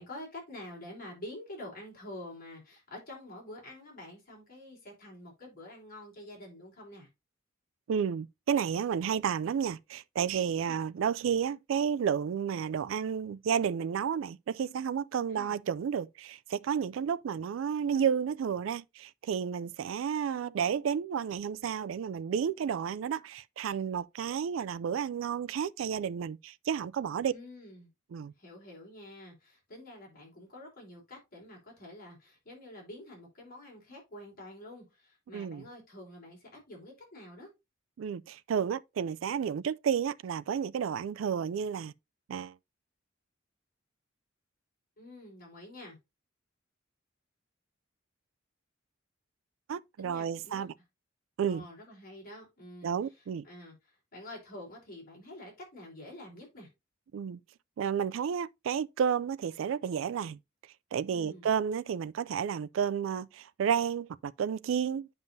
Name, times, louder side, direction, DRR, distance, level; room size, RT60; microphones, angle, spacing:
voice 1, 0.0-7.1 10.6-10.8 15.3-15.5 27.3-27.9 28.4-37.5 45.0-46.0 50.0-50.6 51.5-56.7 61.1-61.5, left 1 dB, 50° left, 3.8 m, -47 dB
voice 2, 7.9-27.3 28.1-28.3 35.3-35.6 38.0-41.9 42.3-42.5 49.7-50.7 51.4-51.6 52.8-53.4 57.1-57.4 57.8-60.4 60.9-65.1, right 7 dB, 85° right, 0.3 m, -31 dB
9.2 x 5.4 x 2.7 m
head